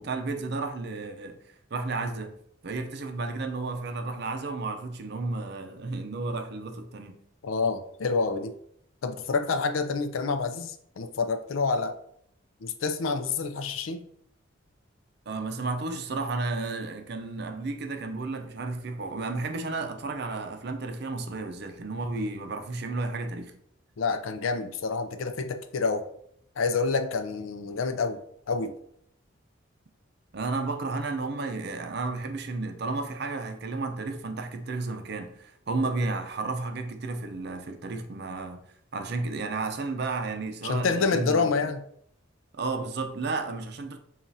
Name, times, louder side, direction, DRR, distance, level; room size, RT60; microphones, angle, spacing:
voice 1, 0.0-1.4 1.7-2.4 2.6-7.2 15.3-23.6 30.3-38.6 38.9-41.5 42.6-44.0, right 3 dB, 55° right, 0.5 m, -32 dB
voice 2, 7.4-8.5 9.0-12.0 12.6-14.0 24.0-26.1 26.6-28.2 28.5-28.7 40.6-41.8, left 4 dB, 80° left, 0.5 m, -28 dB
7.0 x 2.4 x 2.7 m
head